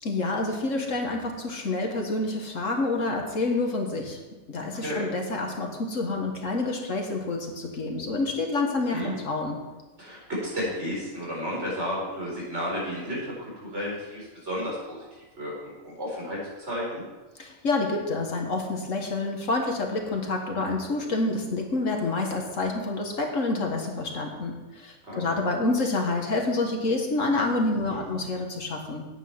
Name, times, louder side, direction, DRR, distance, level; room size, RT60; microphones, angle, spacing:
voice 1, 0.0-4.2 4.5-9.6 17.4-29.1, left 2 dB, 65° left, 2 dB, 1.8 m, -28 dB
voice 2, 4.7-5.1 8.9-9.1 10.0-15.0 15.4-17.0 25.1-25.3 27.9-28.0, equal, 55° right, -5 dB, 5.1 m, -32 dB
9.5 x 9.1 x 5.8 m, 1.1 s
omnidirectional pair, 1.4 m